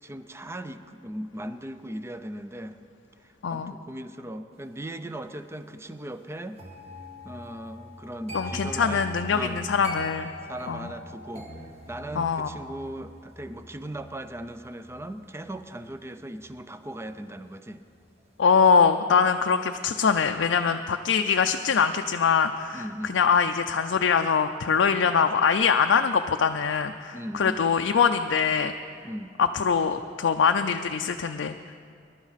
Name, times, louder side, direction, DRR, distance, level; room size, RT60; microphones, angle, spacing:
voice 1, 0.0-2.8 3.2-6.6 7.2-9.0 9.3-9.6 10.4-11.5 11.9-17.8 22.7-23.2 27.1-27.7 29.0-29.3, right 1 dB, 15° right, 10 dB, 0.5 m, -38 dB
voice 2, 3.4-3.7 8.3-10.3 10.7-10.9 12.2-12.5 18.4-28.7 29.4-31.7, left 6 dB, 90° left, 6 dB, 0.4 m, -23 dB
sound 1, 6.6-17.5 17.8-18.2, equal, 35° right, 1.7 m, -42 dB
21.0 x 11.5 x 4.1 m, 2.3 s
head